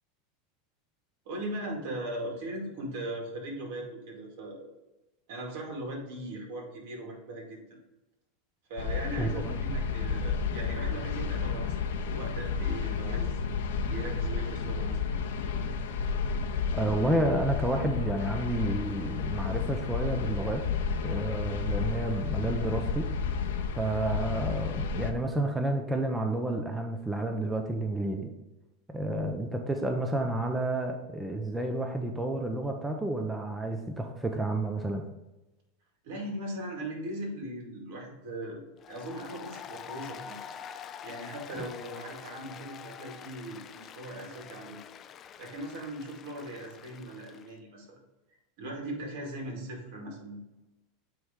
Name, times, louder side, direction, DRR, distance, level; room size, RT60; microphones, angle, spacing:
voice 1, 1.3-4.7 5.3-7.8 8.7-13.4 13.9-15.1 36.0-38.6 38.9-40.4 41.0-44.8 45.4-48.0 48.6-50.4, right 1 dB, 70° right, 0 dB, 2.3 m, -39 dB
sound 1, 8.8-25.1, left 5 dB, 85° left, 0.8 m, -31 dB
voice 2, 9.2-9.5 16.7-20.6 21.0-23.1 23.8-28.3 28.9-35.0, right 1 dB, 10° right, 3 dB, 0.7 m, -30 dB
Applause, 38.8-47.5, left 8 dB, 35° left, 0.4 m, -46 dB
9.1 x 3.2 x 3.7 m, 1.0 s
supercardioid pair, 120°, 0 cm